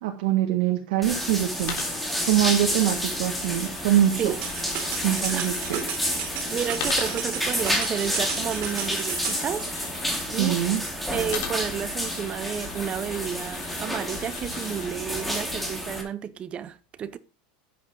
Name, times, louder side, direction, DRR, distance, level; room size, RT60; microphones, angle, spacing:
voice 1, 0.0-1.8 2.3-4.3 5.0-5.8 10.4-10.8, right 12 dB, 70° right, 1.8 m, -23 dB
sound 1, 1.0-16.0, equal, ahead, 2.6 m, -30 dB
Coin (dropping), 1.6-5.9 6.7-10.3 11.3-14.9, left 7 dB, 55° left, 3.3 m, -41 dB
sound 2, 4.4-9.4, right 8 dB, 50° right, 3.7 m, -34 dB
voice 2, 6.5-9.7 10.3-10.6 11.1-17.2, right 8 dB, 25° right, 0.7 m, -31 dB
11.5 x 8.6 x 3.8 m
supercardioid pair, 155°, 5 cm